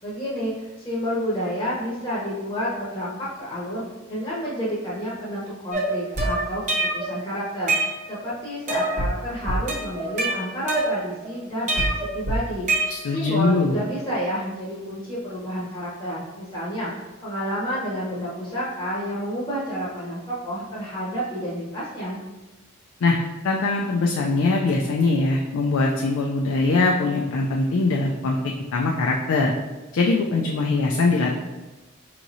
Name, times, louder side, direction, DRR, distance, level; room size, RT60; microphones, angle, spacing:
voice 1, 0.0-6.6 6.9-12.7 13.1-22.2, equal, 20° left, -8 dB, 0.8 m, -30 dB
sound 1, 5.7-7.1 7.5-8.3 8.7-9.1 9.5-11.3 11.7-13.3, right 2 dB, 35° right, 0.8 m, -25 dB
voice 2, 12.9-13.8 23.0-23.2 23.4-28.4 28.7-29.5 29.9-31.3, left 3 dB, 85° left, -1 dB, 0.4 m, -22 dB
4.7 x 3.0 x 2.6 m, 1.1 s
head